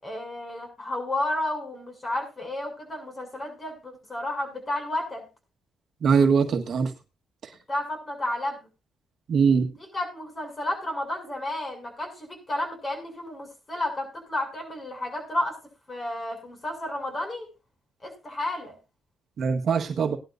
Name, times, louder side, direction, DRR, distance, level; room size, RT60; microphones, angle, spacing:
voice 1, 0.0-5.3 7.7-8.7 9.8-15.6 15.9-17.5 18.0-18.8, left 1 dB, 25° left, 4 dB, 6.9 m, -32 dB
voice 2, 6.0-6.9 9.3-9.7 19.4-20.2, right 6 dB, 60° right, 4 dB, 1.5 m, -22 dB
18.0 x 11.5 x 2.6 m, 0.27 s
cardioid pair, 90°, 0 cm